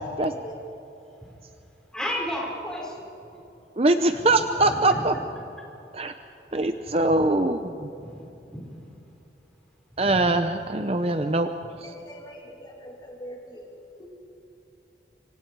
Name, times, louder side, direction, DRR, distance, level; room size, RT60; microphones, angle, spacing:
voice 1, 0.2-0.6 11.8-13.7 14.0-14.1, equal, 25° left, 0 dB, 2.6 m, -43 dB
voice 2, 1.9-3.4 4.1-4.3 4.7-5.0 8.0-8.7 9.9-10.2, equal, 5° left, -3 dB, 4.7 m, -34 dB
voice 3, 3.8-5.1 5.9-6.1 6.5-7.9 10.0-11.5 11.8-11.9, right 2 dB, 35° right, 8 dB, 0.7 m, -22 dB
26.0 x 25.5 x 4.7 m, 2.9 s
head